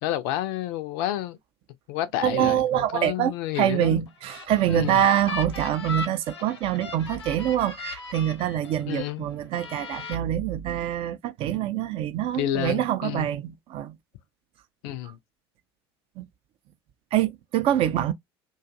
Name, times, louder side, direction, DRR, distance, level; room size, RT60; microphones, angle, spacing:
voice 1, 0.0-1.4 1.9-4.0 4.7-5.0 8.9-9.3 12.3-13.3 14.8-15.2, left 13 dB, 55° left, 0.4 m, -30 dB
voice 2, 2.2-14.0 16.2-16.3 17.1-18.1, right 11 dB, 40° right, 0.4 m, -25 dB
sound 1, 4.1-9.1 9.5-10.2, left 4 dB, 80° left, 0.8 m, -38 dB
2.5 x 2.3 x 2.6 m
figure-of-eight pair, 70°, 14 cm